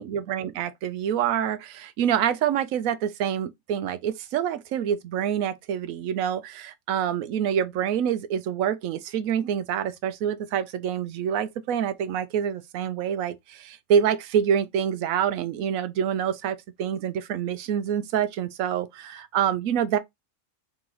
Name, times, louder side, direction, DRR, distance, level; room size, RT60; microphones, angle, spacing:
voice 1, 0.0-20.0, right 9 dB, 85° right, 1.0 m, -26 dB
3.8 x 3.8 x 3.0 m
omnidirectional pair, 1.4 m